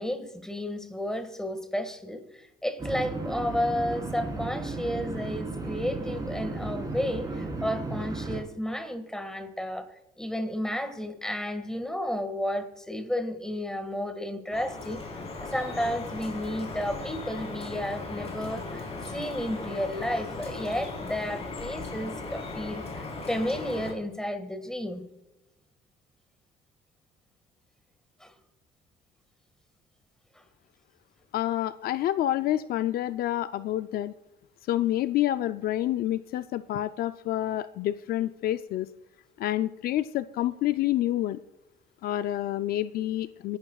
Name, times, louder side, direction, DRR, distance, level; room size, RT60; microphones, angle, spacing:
voice 1, 0.0-9.9 10.2-15.0 15.5-25.0 28.2-28.3, equal, 5° left, 8 dB, 1.7 m, -32 dB
sound 1, 2.8-8.4, right 2 dB, 25° right, 3.7 m, -34 dB
Drip, 14.5-23.9, left 3 dB, 40° left, 4.0 m, -37 dB
voice 2, 31.3-34.1 34.7-38.9 39.4-41.4 42.0-43.6, left 13 dB, 65° left, 12 dB, 0.4 m, -28 dB
25.5 x 11.0 x 2.4 m, 0.93 s
cardioid pair, 110°, 17 cm